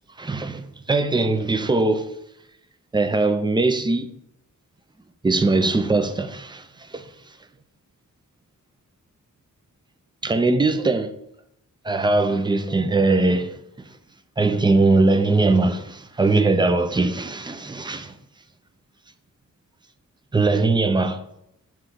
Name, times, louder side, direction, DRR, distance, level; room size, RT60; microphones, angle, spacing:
voice 1, 0.2-2.2 2.9-4.1 5.2-7.1 10.2-11.2 11.8-13.6 13.8-13.9 14.4-18.2 20.3-21.2, right 3 dB, 15° right, 0.4 m, -21 dB
7.6 x 3.0 x 5.7 m
wide cardioid pair, 160°, 33 cm